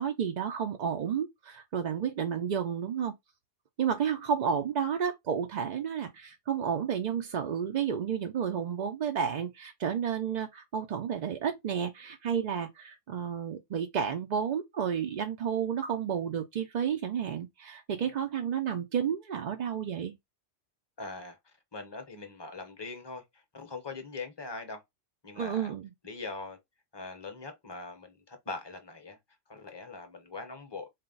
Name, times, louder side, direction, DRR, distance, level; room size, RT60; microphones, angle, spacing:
voice 1, 0.0-3.1 3.8-20.2 25.4-25.9, right 7 dB, 60° right, 0.4 m, -31 dB
voice 2, 21.0-21.4 21.7-24.8 25.2-25.7 26.0-26.6 26.9-29.2 29.5-30.9, left 3 dB, 25° left, 0.7 m, -41 dB
4.1 x 2.1 x 3.8 m
omnidirectional pair, 1.3 m